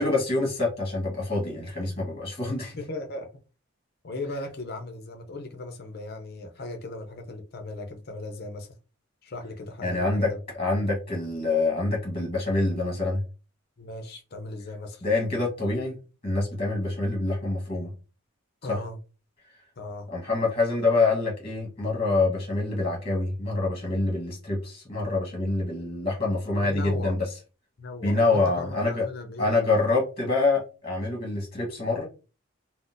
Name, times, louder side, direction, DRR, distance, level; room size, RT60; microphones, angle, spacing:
voice 1, 0.0-2.7 9.8-10.3 10.6-13.2 15.0-16.0 16.2-17.9 18.7-18.8 20.1-27.2 28.0-29.0 29.4-32.1, left 3 dB, 25° left, -2 dB, 1.1 m, -26 dB
voice 2, 2.8-3.3 4.0-8.8 9.2-10.4 13.8-15.0 18.6-19.0 19.8-20.1 26.6-27.2 27.8-29.6, left 2 dB, 50° left, 5 dB, 0.5 m, -37 dB
3.8 x 2.1 x 2.5 m, 0.34 s
head